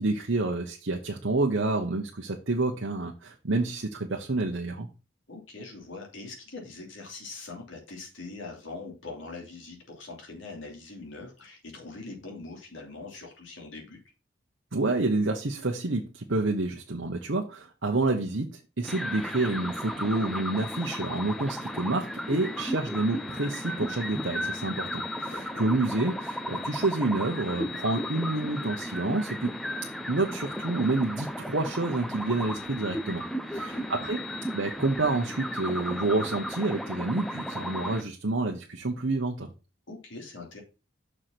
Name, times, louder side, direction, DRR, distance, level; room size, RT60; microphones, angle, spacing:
voice 1, 0.0-4.9 14.7-29.5 30.1-33.2 33.5-34.2 34.5-39.5, right 2 dB, 65° right, 1 dB, 1.0 m, -28 dB
voice 2, 5.3-14.0 25.2-25.6 33.5-33.8 39.9-40.6, left 3 dB, 75° left, 1 dB, 2.9 m, -42 dB
sound 1, 18.8-38.0, equal, ahead, 0.6 m, -35 dB
6.6 x 4.8 x 5.8 m, 0.31 s
head